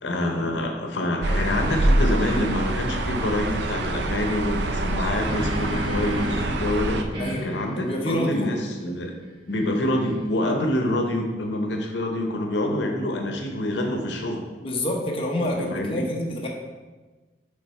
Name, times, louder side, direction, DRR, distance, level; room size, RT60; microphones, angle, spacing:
voice 1, 0.0-7.0 7.4-9.1 9.5-14.4 15.4-16.1, left 1 dB, 85° left, 3 dB, 0.7 m, -26 dB
sound 1, 1.2-7.0, right 1 dB, 75° right, 0.5 m, -25 dB
sound 2, 2.3-2.4 4.8-6.6 7.1-10.5, equal, 30° right, 1.2 m, -34 dB
voice 2, 7.7-8.5 14.6-16.5, left 1 dB, 30° left, -1 dB, 0.9 m, -27 dB
6.6 x 3.6 x 4.3 m, 1.3 s
head